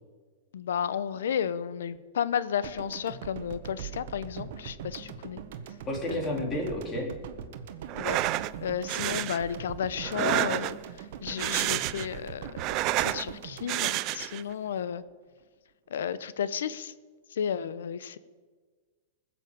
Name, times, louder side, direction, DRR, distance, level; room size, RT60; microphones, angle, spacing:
voice 1, 0.5-5.4 6.1-6.5 8.0-8.2 8.6-12.6 13.0-15.0 15.9-16.9 17.3-18.2, left 8 dB, 80° left, 15 dB, 0.8 m, -33 dB
sound 1, 2.6-14.8, right 7 dB, 60° right, 1.3 m, -42 dB
voice 2, 5.9-7.1, left 1 dB, 25° left, 1 dB, 3.4 m, -31 dB
sound 2, 7.9-8.5 8.9-9.4 10.0-10.9 11.3-12.2 12.5-13.2 13.7-14.4, right 17 dB, 40° right, 0.5 m, -29 dB
19.5 x 7.3 x 8.2 m, 1.5 s
hypercardioid pair, 140°, 0 cm